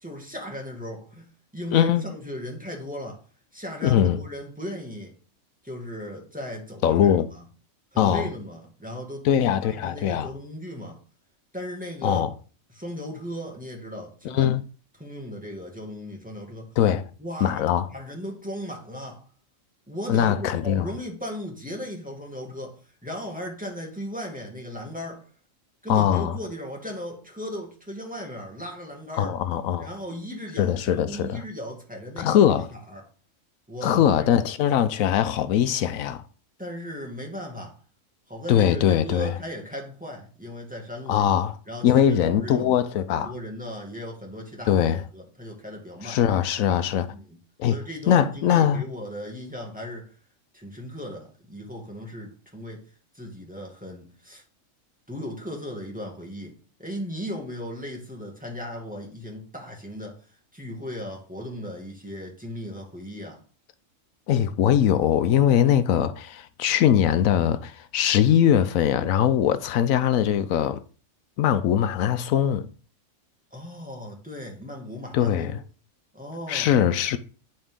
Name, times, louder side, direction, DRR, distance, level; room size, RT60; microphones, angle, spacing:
voice 1, 0.0-3.2 3.5-5.1 5.6-7.4 7.9-9.3 9.8-11.0 11.5-12.3 12.7-14.5 15.0-16.8 17.2-17.6 17.9-19.3 19.9-25.3 25.8-29.3 29.8-32.4 32.7-33.1 33.7-34.3 36.6-37.8 38.3-41.3 41.7-42.8 43.1-46.2 47.1-47.4 47.7-50.2 50.5-52.8 53.1-54.4 55.1-60.2 60.5-63.4 73.5-75.6 76.1-76.7, equal, 5° right, 2.0 m, -37 dB
voice 2, 1.7-2.0 3.8-4.2 6.8-7.3 8.0-8.3 9.2-10.3 12.0-12.3 14.2-14.6 16.8-17.0 17.4-17.9 20.1-20.9 25.9-26.4 29.2-29.9 30.6-31.4 32.2-32.7 33.8-36.2 38.5-39.3 41.1-41.5 41.8-43.3 44.7-45.0 46.0-47.1 47.6-47.8 48.1-48.8 64.3-70.8 71.4-72.7 75.1-75.6 76.5-77.2, left 10 dB, 85° left, 1.1 m, -21 dB
10.5 x 4.3 x 3.7 m
omnidirectional pair, 1.4 m